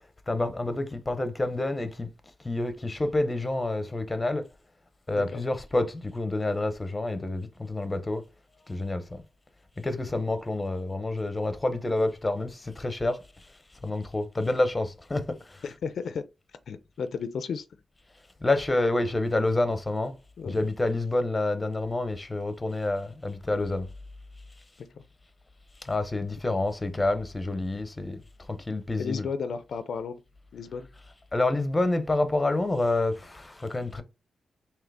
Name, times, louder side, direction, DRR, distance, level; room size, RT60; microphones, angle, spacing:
voice 1, 0.3-2.1 2.4-4.5 5.1-8.2 8.7-9.2 9.8-13.5 13.8-15.6 18.4-20.2 20.4-23.9 25.8-28.2 28.5-29.2 31.3-34.0, left 2 dB, 20° left, 0.6 m, -28 dB
voice 2, 15.6-16.2 16.5-17.7 20.4-20.6 24.8-25.0 29.0-30.2 30.5-30.9, left 5 dB, 70° left, 0.3 m, -34 dB
3.7 x 2.8 x 3.4 m
cardioid pair, 90°, 0 cm